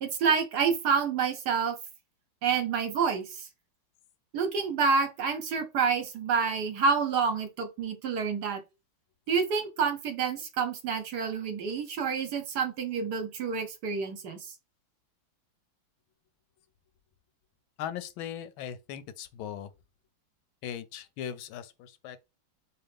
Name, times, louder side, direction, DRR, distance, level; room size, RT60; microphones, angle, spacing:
voice 1, 0.0-1.8 2.4-3.5 4.3-8.6 9.3-14.5, right 5 dB, 65° right, 1.1 m, -28 dB
voice 2, 17.8-19.7 20.6-22.2, left 9 dB, 90° left, 1.4 m, -39 dB
4.2 x 3.4 x 3.4 m
omnidirectional pair, 2.2 m